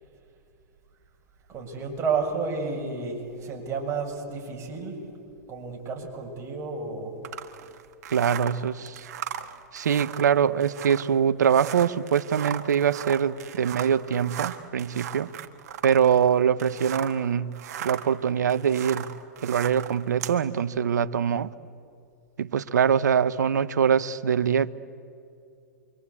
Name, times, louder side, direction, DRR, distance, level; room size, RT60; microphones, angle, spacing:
voice 1, 1.5-5.0 5.5-7.2, right 5 dB, 30° right, 7.0 m, -31 dB
sound 1, 7.2-17.2 17.5-20.4, right 10 dB, 65° right, 1.7 m, -38 dB
voice 2, 8.1-9.1 9.7-15.3 15.8-17.5 17.8-19.1 19.4-21.5 22.4-24.7, right 8 dB, 85° right, 0.9 m, -23 dB
28.5 x 24.5 x 8.5 m
hypercardioid pair, 115°, 9 cm